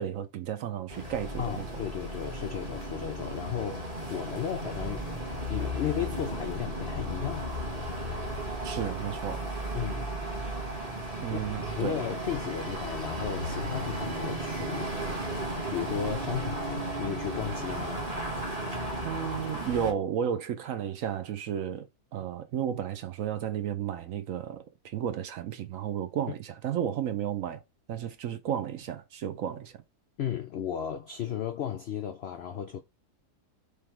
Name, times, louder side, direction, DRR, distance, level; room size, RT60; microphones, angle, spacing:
voice 1, 0.0-1.7 8.6-9.4 11.2-12.0 19.0-21.9 22.1-27.6 27.9-29.7, right 9 dB, 65° right, 1.0 m, -33 dB
sound 1, 0.9-19.9, right 1 dB, 25° right, 1.3 m, -34 dB
voice 2, 1.4-5.1 5.5-7.5 9.7-10.1 11.3-15.0 15.7-18.1 30.2-32.8, left 9 dB, 80° left, 0.5 m, -35 dB
3.6 x 3.2 x 4.5 m
omnidirectional pair, 1.7 m